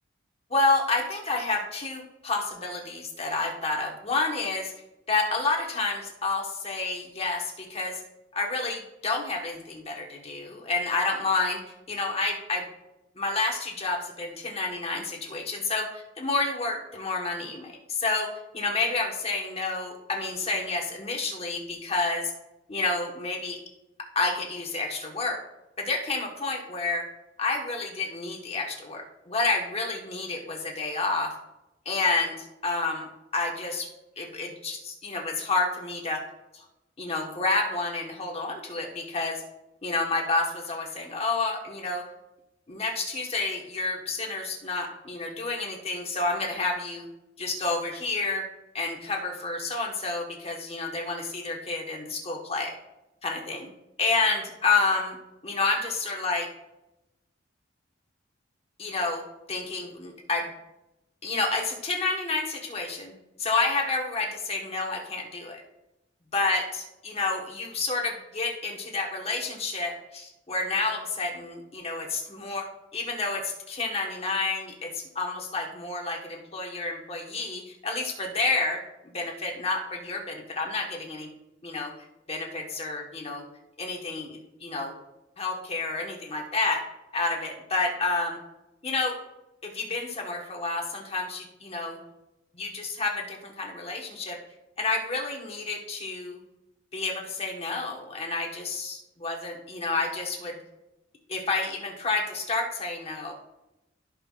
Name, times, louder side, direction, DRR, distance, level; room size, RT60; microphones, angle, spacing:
voice 1, 0.5-4.7 5.1-8.0 8.3-11.6 11.9-12.7 13.2-22.3 22.7-23.6 24.1-25.4 25.8-27.1 27.4-31.3 31.8-33.9 34.2-36.2 36.5-36.6 37.0-39.4 39.8-42.0 42.7-47.1 47.4-48.5 48.7-52.7 53.2-53.7 54.0-55.2 55.4-56.5 58.8-59.2 59.5-60.5 61.2-63.1 63.4-65.6 66.3-78.8 79.1-81.3 81.6-81.9 82.3-83.5 83.8-84.9 85.4-86.9 87.1-88.4 88.8-89.2 89.6-92.0 92.5-94.4 94.8-96.4 96.9-100.6 101.3-103.3, left 3 dB, 35° left, 0 dB, 1.3 m, -29 dB
15.5 x 5.6 x 2.5 m, 0.91 s
head